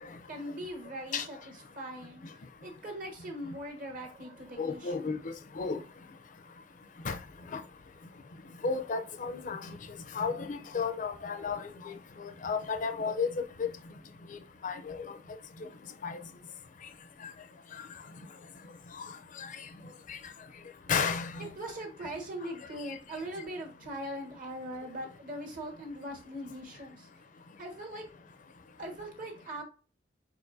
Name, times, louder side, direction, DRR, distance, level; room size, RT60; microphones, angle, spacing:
voice 1, 0.3-5.1 21.4-27.1 27.6-28.0 28.8-29.6, right 1 dB, 50° right, 1.4 m, -41 dB
voice 2, 4.6-5.8 7.0-7.2 7.5-7.6 8.6-9.6 10.1-11.9 12.2-13.3 14.6-15.0 16.0-16.2 17.2-17.3 19.4-19.5 20.1-20.2 20.9-21.5, left 5 dB, 45° left, 0.5 m, -33 dB
4.7 x 4.1 x 2.6 m
head